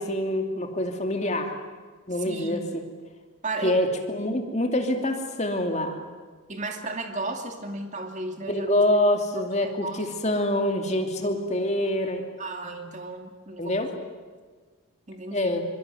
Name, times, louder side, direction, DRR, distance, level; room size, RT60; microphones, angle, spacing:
voice 1, 0.0-1.5 2.1-2.8 3.6-6.0 8.5-12.2 13.6-13.9 15.3-15.7, left 1 dB, 30° left, 4 dB, 2.7 m, -25 dB
voice 2, 2.2-2.7 3.4-3.8 6.5-8.8 9.6-10.0 12.4-13.8 15.1-15.5, right 2 dB, 35° right, 4 dB, 2.5 m, -34 dB
25.0 x 24.5 x 9.5 m, 1.4 s
head